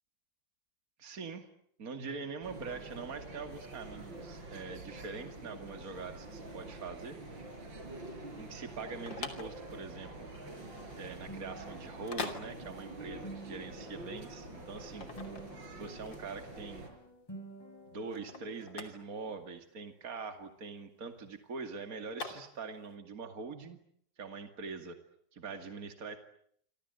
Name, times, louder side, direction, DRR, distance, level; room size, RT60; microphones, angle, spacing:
voice 1, 1.0-1.5 1.8-7.2 8.4-10.3 11.0-15.1 15.8-16.8 17.9-23.8 24.2-25.0 25.3-26.2, right 4 dB, 50° right, 7 dB, 2.8 m, -43 dB
sound 1, 2.4-16.9, right 2 dB, 80° right, 6.3 m, -47 dB
sound 2, 8.7-23.0, left 4 dB, 75° left, 3.7 m, -45 dB
sound 3, 10.5-18.7, right 2 dB, 10° left, 6.5 m, -51 dB
28.5 x 25.5 x 8.1 m, 0.66 s
omnidirectional pair, 2.1 m